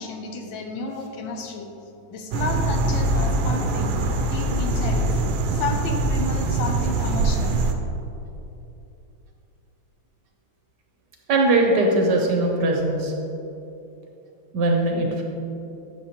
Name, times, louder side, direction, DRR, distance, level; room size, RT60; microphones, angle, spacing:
voice 1, 0.0-1.7 2.1-5.1 5.5-7.6, left 4 dB, 75° left, 3 dB, 1.4 m, -31 dB
sound 1, 2.3-7.7, right 2 dB, 85° right, 1.4 m, -23 dB
voice 2, 11.3-13.1 14.5-15.2, right 2 dB, 65° right, 1 dB, 1.2 m, -20 dB
9.2 x 6.1 x 2.9 m, 2.8 s
omnidirectional pair, 2.2 m